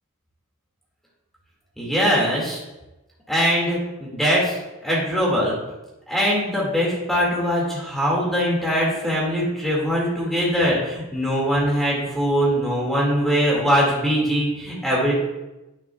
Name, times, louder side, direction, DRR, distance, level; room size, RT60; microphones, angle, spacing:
voice 1, 1.8-2.6 3.3-4.5 4.8-5.5 6.1-15.1, equal, ahead, -5 dB, 2.0 m, -22 dB
9.4 x 8.9 x 2.3 m, 1.0 s
head